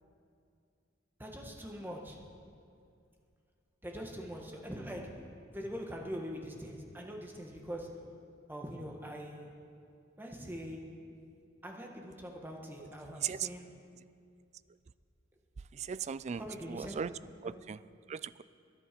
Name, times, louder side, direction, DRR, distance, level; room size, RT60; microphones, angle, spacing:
voice 1, 1.2-2.2 3.8-5.1 5.5-7.9 8.5-9.5 10.2-10.8 11.6-13.7 16.4-17.0 17.4-17.5, equal, 10° right, 1 dB, 1.5 m, -43 dB
voice 2, 15.7-17.1 17.4-17.8 18.1-18.4, right 7 dB, 35° right, 17 dB, 0.3 m, -38 dB
21.0 x 10.5 x 5.2 m, 2.4 s
head